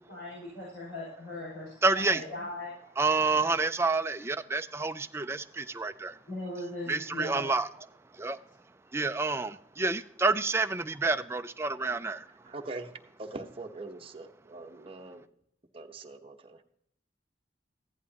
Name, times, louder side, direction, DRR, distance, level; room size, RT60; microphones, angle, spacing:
voice 1, 0.0-2.7 6.3-7.4, left 1 dB, 80° left, -5 dB, 5.8 m, -39 dB
voice 2, 1.8-2.2 3.0-6.2 6.9-7.7 8.1-8.4 8.9-12.3, right 3 dB, 15° right, 9 dB, 0.4 m, -28 dB
voice 3, 12.5-12.9 13.2-15.2 15.7-16.6, right 2 dB, 30° right, 3 dB, 1.0 m, -42 dB
15.0 x 11.0 x 2.9 m, 0.71 s
head